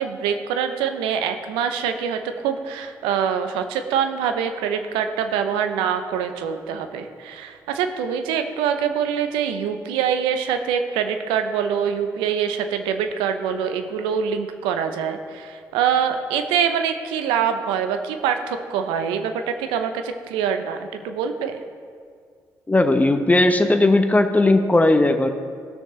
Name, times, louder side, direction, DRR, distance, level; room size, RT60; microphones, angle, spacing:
voice 1, 0.0-21.6, right 7 dB, 80° right, 7 dB, 0.7 m, -24 dB
voice 2, 22.7-25.3, left 2 dB, 15° left, 7 dB, 0.9 m, -17 dB
16.5 x 6.5 x 3.2 m, 2.1 s
hypercardioid pair, 45°, 9 cm